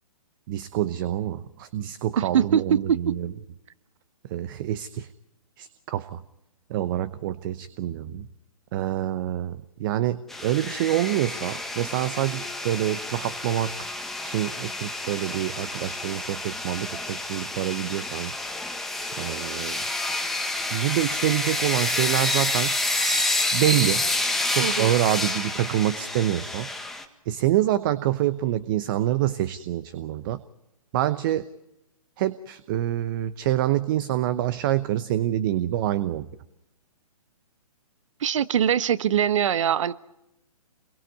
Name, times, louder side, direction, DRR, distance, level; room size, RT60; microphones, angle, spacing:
voice 1, 0.5-3.3 4.3-5.1 5.6-6.2 6.7-8.3 8.7-13.9 14.2-18.3 19.2-19.8 20.7-22.8 23.5-24.0 24.5-26.7 27.3-30.4 30.9-31.5 32.2-36.3, right 13 dB, 35° right, 15 dB, 0.9 m, -26 dB
voice 2, 2.2-3.1 24.6-24.9 38.2-39.9, right 9 dB, 55° right, 15 dB, 1.2 m, -23 dB
sound 1, 10.3-27.0, left 2 dB, ahead, 1.7 m, -29 dB
28.5 x 22.5 x 5.4 m, 0.89 s
figure-of-eight pair, 135°, 19 cm